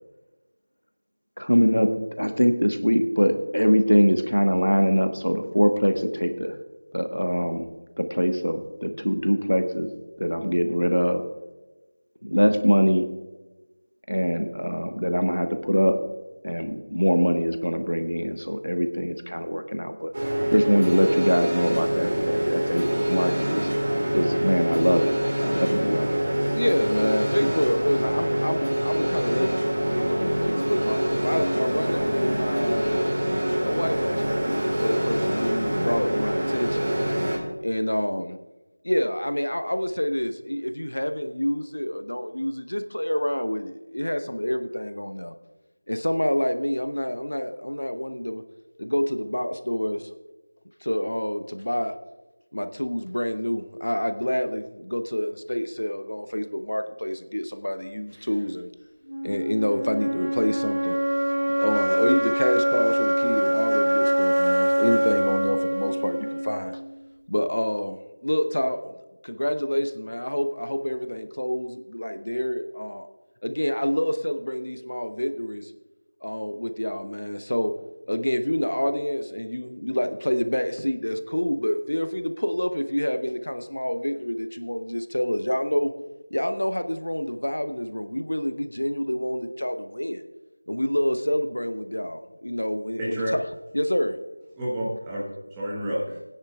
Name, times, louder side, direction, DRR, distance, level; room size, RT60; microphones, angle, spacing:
voice 1, 1.4-6.5 6.9-7.7 8.0-9.9 10.2-11.2 12.2-13.1 14.1-16.0 16.4-20.1 20.5-23.7 24.1-26.1, equal, 90° left, 7 dB, 1.2 m, -23 dB
sound 1, 20.1-37.4, right 1 dB, 30° right, 2.2 m, -25 dB
voice 2, 26.5-29.6 29.9-33.1 33.6-36.8 37.6-38.4 38.8-45.3 45.9-48.4 48.8-50.1 50.8-51.9 52.5-58.7 59.2-61.0 61.6-66.8 67.3-68.9 69.2-73.1 73.4-75.7 76.2-77.7 78.1-85.9 86.3-90.2 90.7-93.4 93.7-94.2, equal, 65° left, 9 dB, 0.8 m, -27 dB
sound 2, 59.1-67.1, right 1 dB, 70° right, 0.4 m, -24 dB
voice 3, 93.0-93.4 94.6-96.2, equal, 5° right, -7 dB, 1.1 m, -29 dB
20.0 x 9.8 x 2.4 m, 1.1 s
figure-of-eight pair, 170°, 0 cm